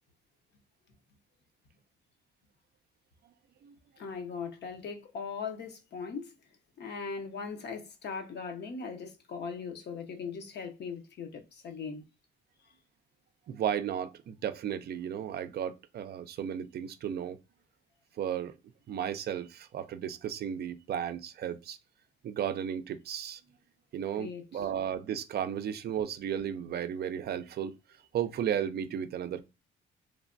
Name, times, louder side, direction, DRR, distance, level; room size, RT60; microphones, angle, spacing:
voice 1, 4.0-6.3 6.8-12.0 24.2-24.7, left 5 dB, 60° left, 0.7 m, -39 dB
voice 2, 13.5-17.4 18.2-18.6 18.9-21.8 22.2-23.4 23.9-27.7 28.1-29.4, right 9 dB, 55° right, 0.4 m, -34 dB
3.2 x 2.2 x 2.4 m
cardioid pair, 90°, 20 cm